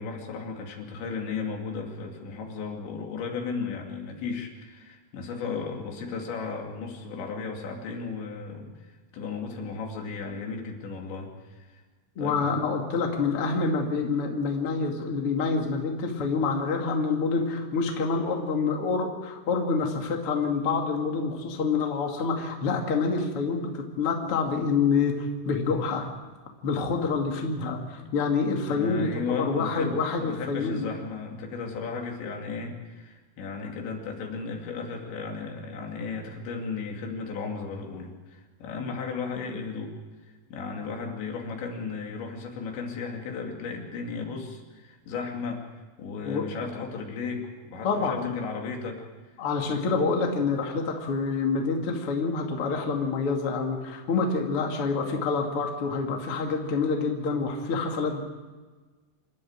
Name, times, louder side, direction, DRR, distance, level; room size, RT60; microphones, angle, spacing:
voice 1, 0.0-11.8 12.2-12.6 28.0-28.1 28.6-39.9 40.5-45.6 46.0-49.0, left 5 dB, 75° left, 1 dB, 4.7 m, -35 dB
voice 2, 12.2-26.1 26.6-30.9 46.3-46.5 47.8-48.4 49.4-58.2, left 4 dB, 40° left, 1 dB, 2.4 m, -27 dB
27.5 x 12.5 x 8.9 m, 1.3 s
omnidirectional pair, 5.3 m